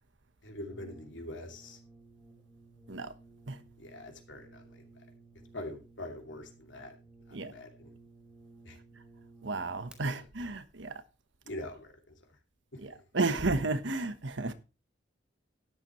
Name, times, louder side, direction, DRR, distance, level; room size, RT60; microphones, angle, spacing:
voice 1, 0.4-1.8 3.8-4.8 5.5-7.0 7.4-7.9 8.6-8.8 11.4-11.9 12.7-13.0, left 1 dB, 90° left, 2.7 m, -43 dB
Brass instrument, 0.7-10.0, right 3 dB, 5° right, 2.7 m, -56 dB
voice 2, 9.4-11.0 12.8-14.5, right 3 dB, 85° right, 1.2 m, -32 dB
12.5 x 10.5 x 3.1 m
head